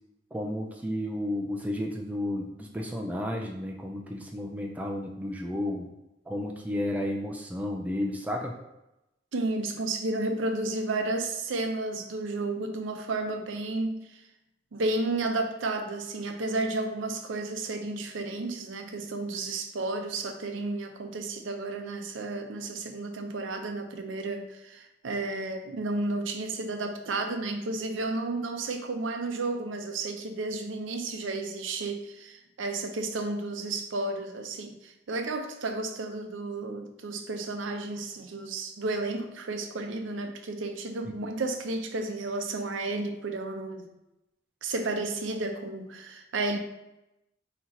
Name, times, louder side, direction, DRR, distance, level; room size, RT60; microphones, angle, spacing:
voice 1, 0.3-5.9 6.3-8.5 41.1-41.3, left 1 dB, 10° right, 0 dB, 0.4 m, -32 dB
voice 2, 9.3-14.2 14.7-43.9 44.6-46.6, right 2 dB, 90° right, 5 dB, 0.6 m, -32 dB
4.3 x 2.9 x 3.7 m, 0.91 s
head